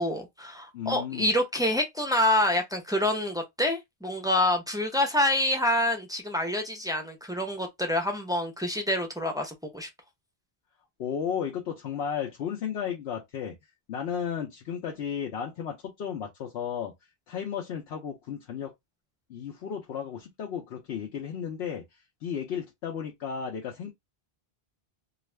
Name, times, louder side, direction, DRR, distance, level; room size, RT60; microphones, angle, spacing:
voice 1, 0.0-9.9, left 1 dB, 5° right, 0.4 m, -27 dB
voice 2, 0.7-1.3 11.0-13.6 13.9-16.9 17.3-18.7 19.3-21.8 22.2-23.9, left 8 dB, 80° left, 0.9 m, -34 dB
2.4 x 2.4 x 3.1 m
omnidirectional pair, 1.1 m